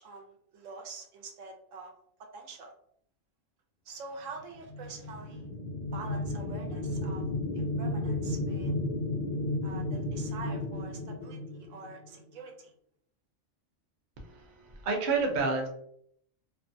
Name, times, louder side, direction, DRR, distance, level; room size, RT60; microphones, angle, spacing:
voice 1, 0.0-1.9 2.2-2.7 3.8-5.5 5.9-7.2 7.5-8.7 9.6-12.7, right 4 dB, 80° right, 2 dB, 1.0 m, -45 dB
sound 1, 4.5-12.2, left 1 dB, 35° left, 0.5 m, -33 dB
voice 2, 14.2-15.7, right 4 dB, 50° right, 1 dB, 0.6 m, -30 dB
2.6 x 2.2 x 2.6 m, 0.67 s
omnidirectional pair, 1.3 m